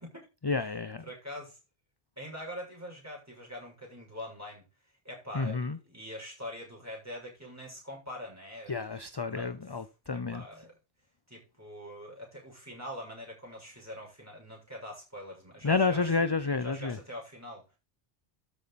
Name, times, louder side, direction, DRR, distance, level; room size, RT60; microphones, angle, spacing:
voice 1, 0.4-1.1 5.3-5.8 8.7-10.4 15.6-17.0, left 4 dB, 25° left, 0.6 m, -30 dB
voice 2, 1.0-1.6 2.2-4.6 5.0-8.7 9.3-9.5 10.1-10.7 11.3-16.1 16.6-17.6, equal, 15° right, 6.7 m, -43 dB
12.5 x 8.0 x 4.2 m
omnidirectional pair, 1.2 m